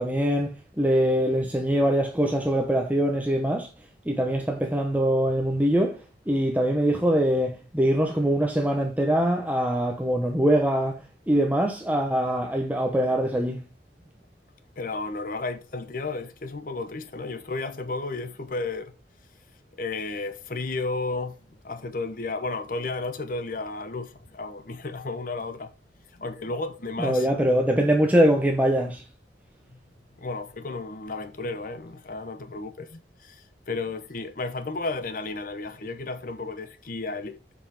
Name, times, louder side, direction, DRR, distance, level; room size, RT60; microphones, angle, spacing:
voice 1, 0.0-3.7 4.0-13.6 27.0-29.0, equal, 10° right, 0.9 m, -23 dB
voice 2, 14.8-18.9 19.8-25.7 26.1-27.3 29.7-29.8 30.2-37.3, left 3 dB, 50° left, 0.8 m, -33 dB
7.1 x 5.6 x 4.8 m
head